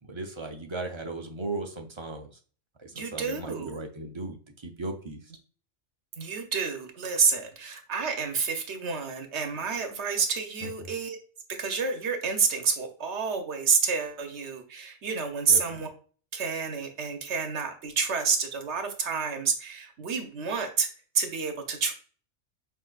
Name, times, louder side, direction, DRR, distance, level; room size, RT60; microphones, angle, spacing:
voice 1, 0.0-2.4 2.8-5.3 10.6-10.9 15.5-15.6, right 2 dB, 40° right, 3 dB, 0.4 m, -37 dB
voice 2, 2.9-3.8 6.2-11.2 11.5-15.9 16.3-20.9 21.1-21.9, right 5 dB, 70° right, 5 dB, 1.1 m, -29 dB
5.9 x 2.7 x 2.3 m, 0.41 s
omnidirectional pair, 1.2 m